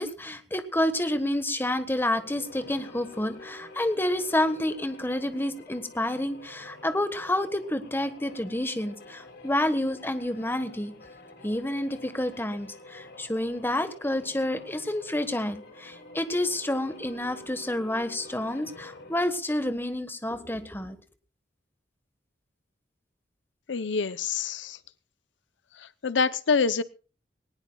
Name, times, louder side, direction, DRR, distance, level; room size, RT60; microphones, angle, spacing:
voice 1, 0.0-10.9 11.4-21.0, left 1 dB, 10° left, 10 dB, 1.4 m, -29 dB
sound 1, 2.0-19.5, left 2 dB, 65° left, 3.6 m, -48 dB
voice 2, 23.7-24.8 25.8-26.8, left 5 dB, 80° left, 15 dB, 0.7 m, -26 dB
20.5 x 19.0 x 2.3 m, 0.35 s
head